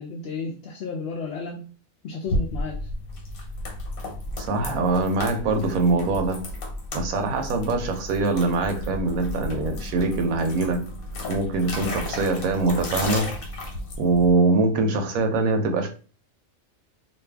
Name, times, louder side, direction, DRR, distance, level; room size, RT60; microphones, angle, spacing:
voice 1, 0.0-1.7 2.0-2.9, left 4 dB, 65° left, 0 dB, 0.8 m, -33 dB
sound 1, 2.3-14.3, left 1 dB, 85° left, 1.4 m, -33 dB
voice 2, 4.4-6.4 6.9-10.8 11.3-13.3 14.0-15.9, right 3 dB, 90° right, 6 dB, 1.1 m, -23 dB
2.7 x 2.5 x 3.3 m, 0.37 s
omnidirectional pair, 1.4 m